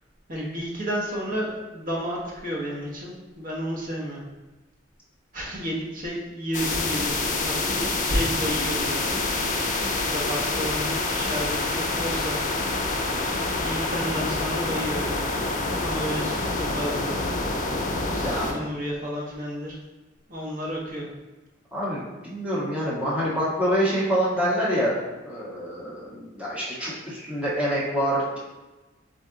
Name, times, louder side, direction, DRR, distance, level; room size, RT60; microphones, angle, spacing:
voice 1, 0.3-4.2 5.3-9.1 9.9-12.4 13.6-15.2 15.8-17.2 18.1-19.8 20.3-21.1, equal, 45° right, -4 dB, 1.0 m, -31 dB
sound 1, 6.5-18.5, left 2 dB, 40° left, 0.6 m, -27 dB
voice 2, 18.2-18.5 21.7-24.9 25.2-28.4, equal, 5° right, -9 dB, 1.3 m, -26 dB
4.0 x 3.4 x 3.8 m, 1.1 s
head